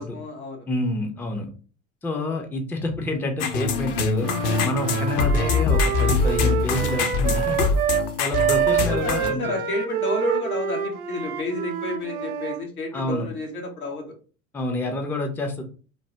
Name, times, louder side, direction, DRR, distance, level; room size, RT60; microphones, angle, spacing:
voice 1, 0.0-0.7 8.7-14.1, left 2 dB, 85° left, 1 dB, 1.0 m, -30 dB
voice 2, 0.7-1.5 2.0-4.3 4.6-7.6 8.2-9.5 12.9-13.3 14.5-15.6, left 2 dB, 5° left, 4 dB, 0.4 m, -28 dB
sound 1, 3.4-9.3, left 5 dB, 55° left, 0.7 m, -23 dB
Wind instrument woodwind instrument, 4.2-8.1 8.3-12.6, right 9 dB, 80° right, 0.6 m, -27 dB
3.2 x 2.0 x 2.8 m, 0.38 s
hypercardioid pair, 75°, 42 cm